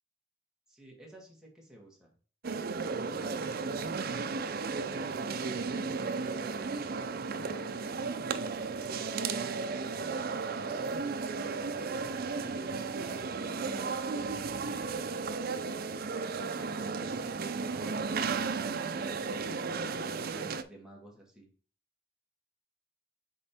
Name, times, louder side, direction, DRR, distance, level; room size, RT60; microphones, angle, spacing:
voice 1, 0.7-2.1 3.0-3.6 11.7-13.9 16.6-21.5, equal, 5° right, -2 dB, 1.7 m, -52 dB
sound 1, 2.4-20.6, right 4 dB, 50° right, 0.5 m, -34 dB
5.3 x 4.3 x 4.2 m, 0.41 s
head